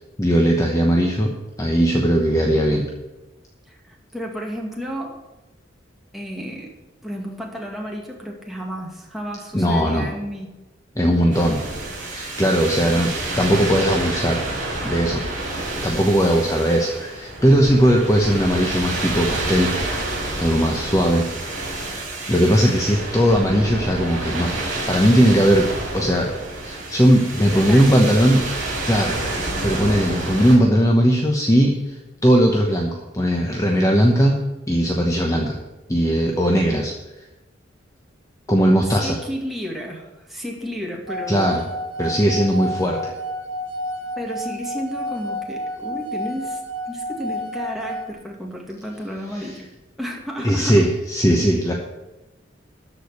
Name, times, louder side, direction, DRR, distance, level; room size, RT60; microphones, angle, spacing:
voice 1, 0.2-1.3 1.6-2.8 9.5-10.1 11.0-11.6 12.0-13.1 13.4-14.4 14.8-15.2 15.8-19.7 20.4-21.2 22.3-24.5 24.9-25.7 25.9-26.3 26.6-28.4 28.8-34.4 34.7-35.6 35.9-36.9 38.5-39.2 41.3-41.6 42.0-43.1 49.3-49.5 50.4-51.7, equal, 15° left, 0 dB, 1.0 m, -18 dB
voice 2, 3.7-5.2 6.1-6.7 7.0-10.5 12.8-13.2 27.5-28.0 36.6-36.8 38.9-41.6 44.2-46.6 46.9-49.7 50.0-50.9, equal, ahead, -1 dB, 2.1 m, -32 dB
sound 1, 11.3-30.6, right 2 dB, 45° right, 4.3 m, -28 dB
sound 2, 41.1-48.1, equal, 80° right, 1.5 m, -30 dB
13.0 x 5.1 x 8.3 m, 1.1 s
head